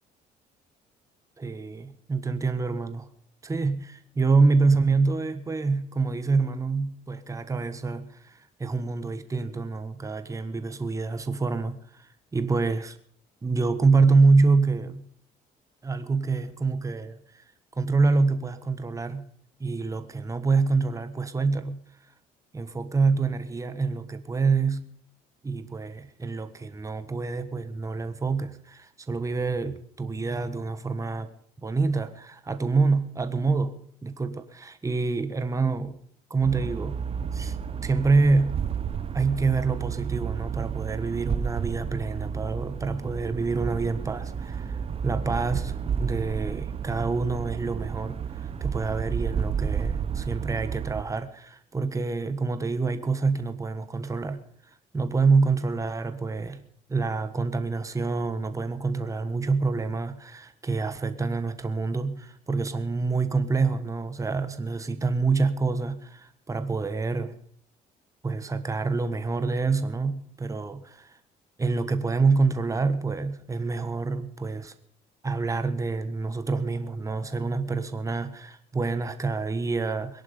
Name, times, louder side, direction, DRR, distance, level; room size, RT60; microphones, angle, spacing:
voice 1, 1.4-3.1 3.4-13.0 13.4-15.1 15.8-17.4 17.7-19.3 19.6-21.9 22.5-24.9 25.4-31.3 31.6-36.0 36.3-37.0 37.3-37.6 37.8-38.6 39.1-54.4 54.9-56.6 56.9-67.4 68.2-71.2 71.6-74.7 75.2-80.2, right 4 dB, 20° right, 10 dB, 1.3 m, -26 dB
sound 1, 36.4-51.0, right 7 dB, 35° right, 1.0 m, -31 dB
21.5 x 11.0 x 5.1 m, 0.62 s
cardioid pair, 110°, 17 cm